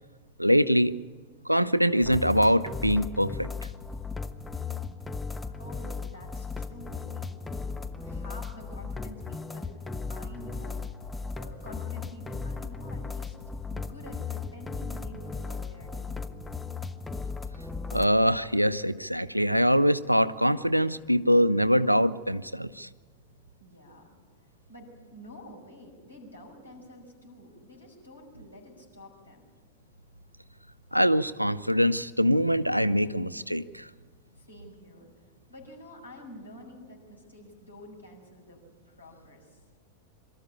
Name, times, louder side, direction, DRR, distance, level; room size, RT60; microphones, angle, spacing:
voice 1, 0.4-0.9 1.5-3.5 17.9-22.9 30.9-33.9, equal, 90° right, 17 dB, 0.5 m, -23 dB
sound 1, 2.0-18.1, left 4 dB, 10° left, 0.7 m, -36 dB
voice 2, 5.6-13.4 13.7-16.4 23.6-29.5 34.4-39.6, equal, 80° left, -2 dB, 5.7 m, -49 dB
23.5 x 13.0 x 8.6 m, 1.5 s
figure-of-eight pair, 90°, 0 cm